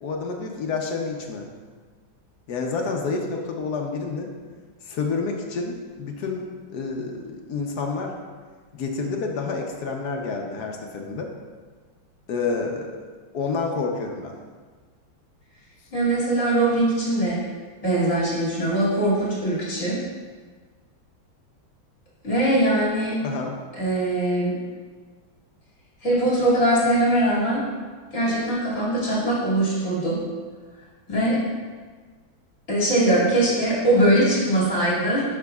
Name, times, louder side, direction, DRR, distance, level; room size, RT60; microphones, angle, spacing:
voice 1, 0.0-1.5 2.5-4.3 4.8-8.1 8.7-11.3 12.3-12.9 13.3-14.3 23.2-23.5, left 4 dB, 60° left, 2 dB, 1.1 m, -29 dB
voice 2, 15.9-17.4 17.8-20.0 22.2-23.2 23.8-24.6 26.0-27.6 28.1-30.2 31.1-31.4 32.7-35.2, right 1 dB, 35° left, -8 dB, 2.7 m, -21 dB
11.5 x 6.1 x 2.3 m, 1.5 s
omnidirectional pair, 2.3 m